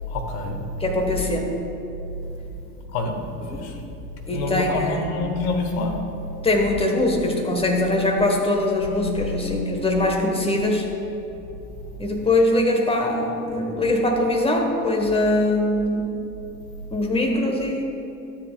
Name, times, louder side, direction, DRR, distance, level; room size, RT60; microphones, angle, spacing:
voice 1, 0.1-0.6 2.9-3.1 3.6-3.8 4.3-6.0, left 3 dB, 65° left, 4 dB, 1.2 m, -26 dB
voice 2, 0.8-1.5 3.4-3.7 4.3-5.0 6.4-10.9 12.0-16.1 16.9-17.8, left 1 dB, 10° left, 2 dB, 1.2 m, -22 dB
12.0 x 7.5 x 2.3 m, 3.0 s
hypercardioid pair, 75°, 46 cm